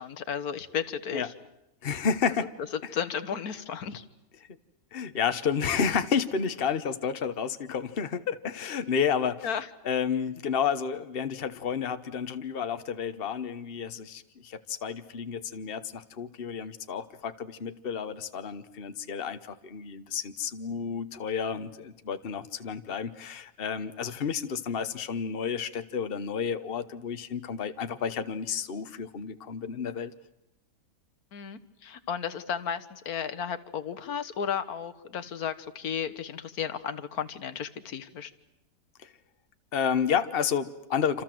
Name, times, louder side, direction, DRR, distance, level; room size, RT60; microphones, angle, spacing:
voice 1, 0.0-1.3 2.9-4.0 9.4-9.7 31.3-38.3, left 7 dB, 65° left, 10 dB, 1.7 m, -34 dB
voice 2, 1.8-2.5 4.9-9.5 9.8-30.1 39.7-41.2, left 7 dB, 40° left, 10 dB, 1.2 m, -31 dB
27.5 x 27.0 x 7.8 m, 0.89 s
omnidirectional pair, 1.7 m